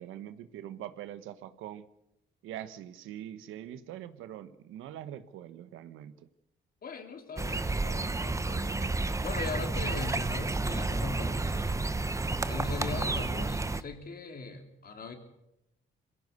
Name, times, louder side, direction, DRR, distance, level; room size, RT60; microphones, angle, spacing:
voice 1, 0.0-1.8 2.4-6.3, right 11 dB, 90° right, 12 dB, 1.2 m, -43 dB
voice 2, 6.8-9.0 9.2-11.9 12.2-15.1, left 4 dB, 50° left, 5 dB, 3.4 m, -40 dB
sound 1, 7.4-13.8, right 3 dB, 15° right, 0.9 m, -31 dB
22.0 x 16.5 x 8.1 m, 0.87 s
cardioid pair, 90°, 20 cm